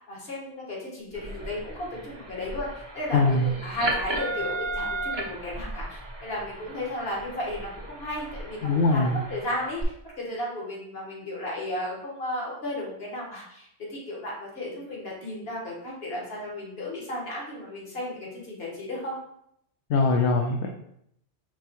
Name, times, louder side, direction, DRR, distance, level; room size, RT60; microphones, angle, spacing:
voice 1, 0.1-19.2, left 1 dB, 60° left, -3 dB, 1.6 m, -34 dB
sound 1, 1.1-9.8, right 2 dB, 30° right, 0.5 m, -35 dB
voice 2, 3.1-3.5 8.6-9.2 19.9-20.7, left 3 dB, 80° left, 1 dB, 0.9 m, -22 dB
4.9 x 3.5 x 2.8 m, 0.72 s
omnidirectional pair, 1.2 m